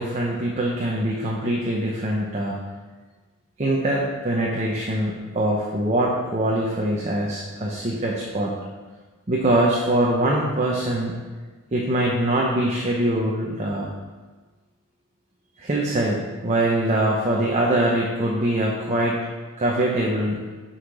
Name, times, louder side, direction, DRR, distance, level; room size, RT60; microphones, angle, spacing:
voice 1, 0.0-2.6 3.6-8.5 9.3-11.1 11.7-13.9 15.6-19.2 19.6-20.4, right 1 dB, 30° right, -3 dB, 0.8 m, -23 dB
6.5 x 5.7 x 4.8 m, 1.3 s
head